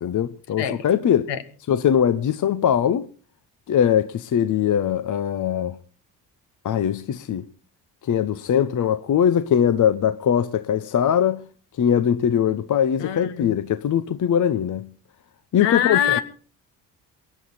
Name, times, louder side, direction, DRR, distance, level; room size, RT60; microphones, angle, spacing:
voice 1, 0.0-1.3 1.7-3.1 3.7-5.8 6.6-7.4 8.0-11.4 11.8-14.9 15.5-16.2, left 9 dB, 40° left, 0.9 m, -21 dB
voice 2, 13.0-13.5 15.6-16.2, left 10 dB, 60° left, 1.7 m, -23 dB
22.5 x 11.0 x 4.1 m
figure-of-eight pair, 45°, 49 cm